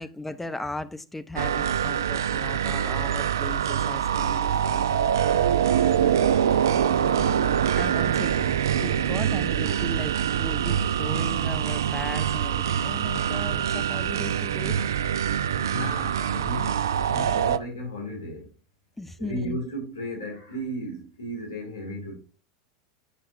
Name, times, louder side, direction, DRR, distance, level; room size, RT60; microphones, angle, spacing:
voice 1, 0.0-5.6 6.9-14.9 19.0-19.6, left 2 dB, 10° left, 0.6 m, -37 dB
sound 1, 1.4-17.6, right 9 dB, 70° right, 0.3 m, -24 dB
voice 2, 5.8-6.5 9.0-9.2 14.4-14.7 15.6-18.5 19.2-22.1, equal, 75° left, 2.4 m, -35 dB
8.5 x 5.6 x 2.5 m
figure-of-eight pair, 85°, 2 cm